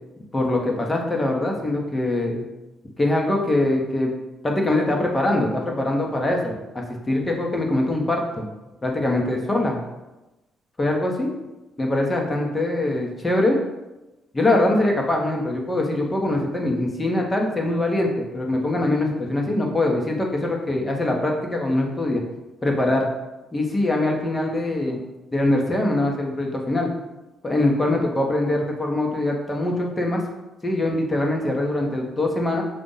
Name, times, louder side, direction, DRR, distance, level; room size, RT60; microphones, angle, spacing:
voice 1, 0.3-2.4 3.0-4.1 4.4-8.5 8.8-9.8 10.8-11.3 11.8-13.6 14.3-22.2 22.6-23.1 23.5-25.0 25.3-26.9 27.4-30.2 30.6-32.6, left 1 dB, 20° left, 1 dB, 1.2 m, -23 dB
6.8 x 2.5 x 5.6 m, 1.0 s
cardioid pair, 90°, 0 cm